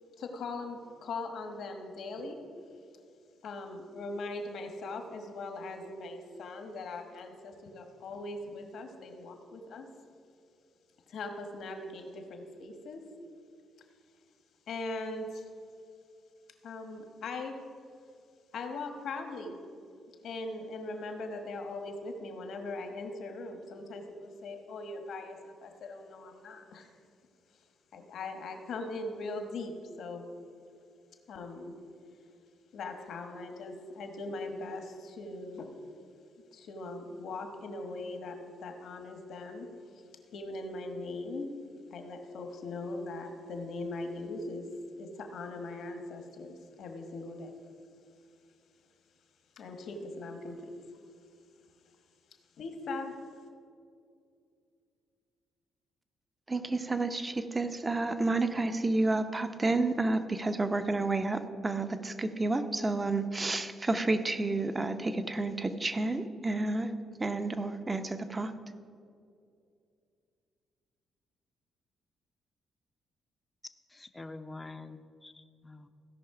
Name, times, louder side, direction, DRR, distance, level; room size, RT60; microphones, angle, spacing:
voice 1, 0.2-2.4 3.4-9.9 11.1-13.0 14.7-15.5 16.6-17.6 18.5-19.6 20.2-26.9 27.9-30.2 31.3-31.7 32.7-35.7 36.5-39.7 39.9-40.0 40.3-41.5 41.9-44.7 45.0-47.5 49.6-50.7 52.6-53.2, left 2 dB, 70° left, 5 dB, 1.3 m, -40 dB
voice 2, 56.5-66.9 67.2-68.5, right 2 dB, 20° right, 9 dB, 0.7 m, -30 dB
voice 3, 73.9-75.9, left 2 dB, 20° left, 9 dB, 0.6 m, -46 dB
16.0 x 5.4 x 4.9 m, 2.4 s
cardioid pair, 90°, 0 cm